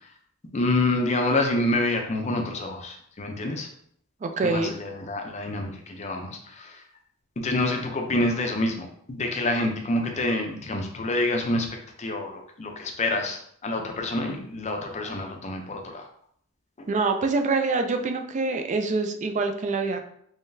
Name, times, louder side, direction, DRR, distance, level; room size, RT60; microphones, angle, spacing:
voice 1, 0.5-3.7 4.4-6.8 7.4-16.0, left 2 dB, 30° left, 3 dB, 0.5 m, -27 dB
voice 2, 4.2-4.7 16.9-20.0, right 3 dB, 30° right, 6 dB, 0.3 m, -25 dB
3.8 x 3.1 x 2.6 m, 0.66 s
head